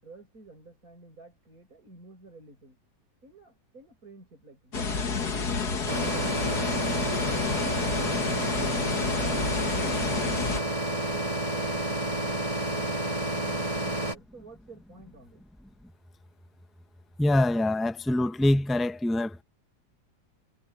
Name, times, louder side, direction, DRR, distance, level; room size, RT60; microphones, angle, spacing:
voice 1, 0.0-2.8 3.2-8.2 10.5-15.4, right 3 dB, 60° right, 8.1 m, -51 dB
sound 1, 4.7-10.6, left 4 dB, 75° left, 2.6 m, -29 dB
sound 2, 5.9-14.2, right 1 dB, 20° right, 2.0 m, -30 dB
voice 2, 17.2-19.4, left 1 dB, ahead, 0.4 m, -24 dB
omnidirectional pair, 1.7 m